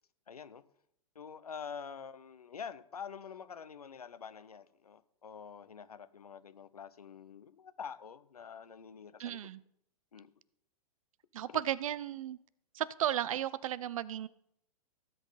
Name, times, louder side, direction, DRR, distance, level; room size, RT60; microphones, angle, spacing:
voice 1, 0.3-0.6 1.1-9.5 10.1-10.3 11.5-11.6, left 6 dB, 85° left, 13 dB, 1.0 m, -47 dB
voice 2, 9.2-9.6 11.3-12.4 12.7-14.3, right 11 dB, 65° right, 19 dB, 0.7 m, -34 dB
17.0 x 8.1 x 4.1 m, 0.73 s
hypercardioid pair, 115°, 19 cm